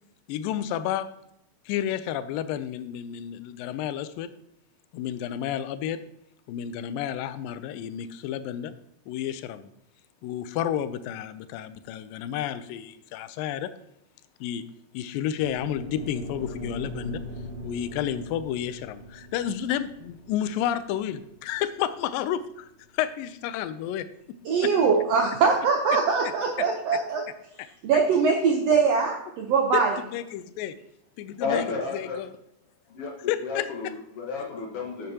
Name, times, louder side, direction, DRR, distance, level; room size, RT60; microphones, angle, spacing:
voice 1, 0.3-1.1 1.7-4.3 4.9-6.0 6.5-8.7 9.1-9.7 10.2-13.7 14.4-14.6 14.9-17.2 17.6-22.7 22.9-24.1 24.6-24.7 25.9-26.0 26.6-26.7 29.7-29.8 30.1-30.8 31.2-32.3 33.3-33.9, left 10 dB, 90° left, 13 dB, 2.3 m, -31 dB
sound 1, 15.4-23.6, equal, 50° right, 3.3 m, -41 dB
voice 2, 24.4-27.2 27.8-29.9, right 5 dB, 75° right, 2 dB, 1.5 m, -22 dB
voice 3, 31.4-32.2 32.9-33.1 33.4-35.1, left 4 dB, 55° left, 0 dB, 1.8 m, -31 dB
10.5 x 7.8 x 2.8 m, 0.80 s
omnidirectional pair, 3.9 m